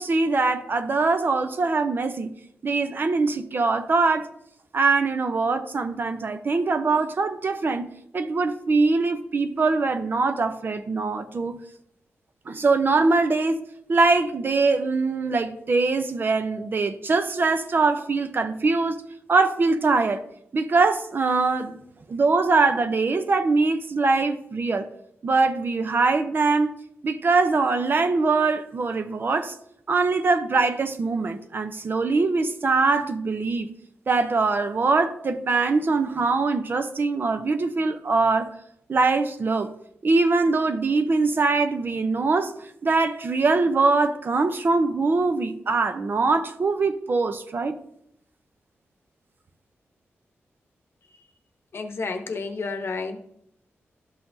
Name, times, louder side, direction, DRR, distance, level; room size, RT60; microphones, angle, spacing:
voice 1, 0.0-2.3 2.6-4.3 4.7-7.9 8.1-11.6 12.5-13.6 13.9-19.0 19.3-20.2 20.5-21.8 22.1-24.9 25.2-26.7 27.0-29.5 29.9-33.7 34.1-38.5 38.9-39.7 40.0-42.5 42.8-47.7, right 3 dB, 45° right, 0.6 m, -22 dB
voice 2, 51.7-53.2, left 4 dB, 55° left, 0.9 m, -31 dB
12.0 x 5.7 x 2.7 m
wide cardioid pair, 105°, 5 cm